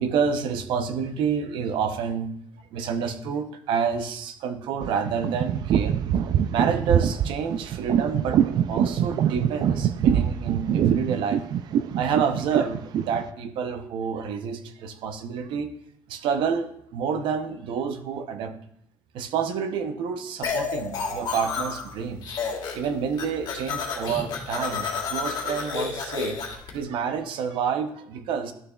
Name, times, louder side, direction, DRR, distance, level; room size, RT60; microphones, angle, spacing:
voice 1, 0.0-2.3 2.7-6.0 6.5-11.4 12.0-15.7 16.1-18.5 19.1-22.4 22.7-26.4 26.7-28.5, right 6 dB, 70° right, 9 dB, 0.8 m, -28 dB
sound 1, 4.8-13.2, right 9 dB, 55° right, 0.4 m, -24 dB
sound 2, 20.4-21.9 22.2-22.9 23.1-26.7, left 5 dB, 55° left, 1.7 m, -30 dB
12.0 x 6.6 x 2.4 m, 0.71 s
cardioid pair, 140°, 9 cm